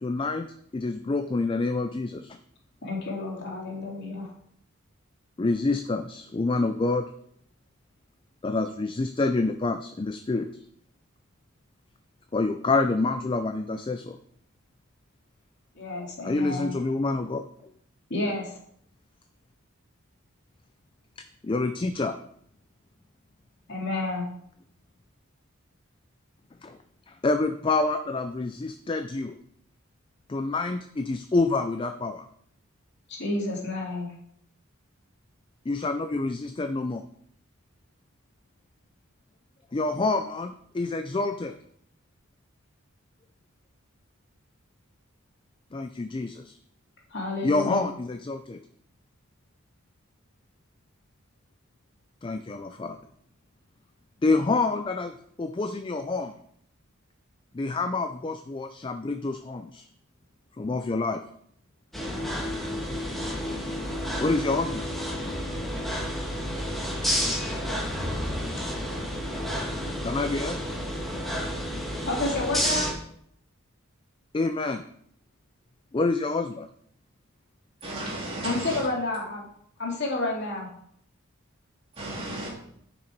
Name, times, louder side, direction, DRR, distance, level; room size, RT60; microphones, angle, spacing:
voice 1, 0.0-0.5 0.7-2.4 5.4-7.1 8.4-10.6 12.3-14.2 16.2-17.7 21.2-22.2 26.6-26.8 27.1-29.4 30.3-32.3 35.7-37.0 39.7-41.5 45.7-46.6 47.4-48.6 52.2-53.0 54.2-56.3 57.5-59.8 60.6-61.2 64.2-64.9 70.0-70.6 74.3-74.8 75.9-76.7, left 3 dB, 25° left, 0.4 m, -27 dB
voice 2, 2.8-4.3 15.8-16.7 18.1-18.5 23.7-24.2 33.1-34.1 47.1-47.9 72.1-72.9 78.4-79.5 79.8-80.7, left 2 dB, 50° left, 2.4 m, -30 dB
sound 1, 61.9-72.9, equal, ahead, 1.7 m, -30 dB
voice 3, 77.8-78.8 81.9-82.5, right 1 dB, 25° right, 3.2 m, -34 dB
10.5 x 6.1 x 4.5 m
head